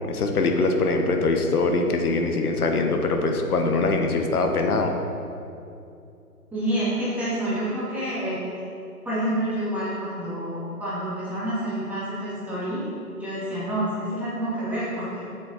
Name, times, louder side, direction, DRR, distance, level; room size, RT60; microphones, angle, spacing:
voice 1, 0.0-4.9, left 3 dB, 70° left, 4 dB, 1.2 m, -23 dB
voice 2, 6.5-8.4 9.0-12.9 13.2-15.2, right 1 dB, 5° right, -10 dB, 2.2 m, -28 dB
7.8 x 7.3 x 5.5 m, 2.6 s
figure-of-eight pair, 145°, 46 cm